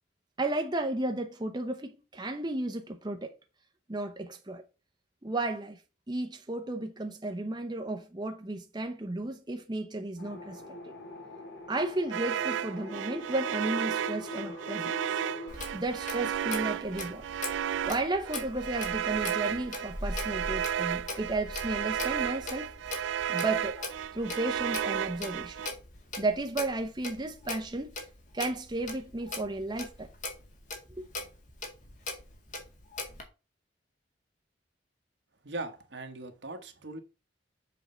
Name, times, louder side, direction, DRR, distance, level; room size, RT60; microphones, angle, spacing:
voice 1, 0.4-3.3 3.9-4.6 5.2-5.8 6.1-10.8 11.7-15.2 15.7-17.2 17.8-22.7 23.3-23.8 24.1-25.6 26.2-28.0 28.3-30.1, right 2 dB, 25° right, 0.8 m, -33 dB
sound 1, 10.2-15.5, left 2 dB, 70° left, 3.9 m, -43 dB
sound 2, 12.1-25.7, right 9 dB, 85° right, 0.3 m, -33 dB
Clock, 15.5-33.2, left 2 dB, 45° left, 2.1 m, -40 dB
voice 2, 35.4-37.0, right 2 dB, 70° right, 1.3 m, -39 dB
7.3 x 4.5 x 5.5 m
head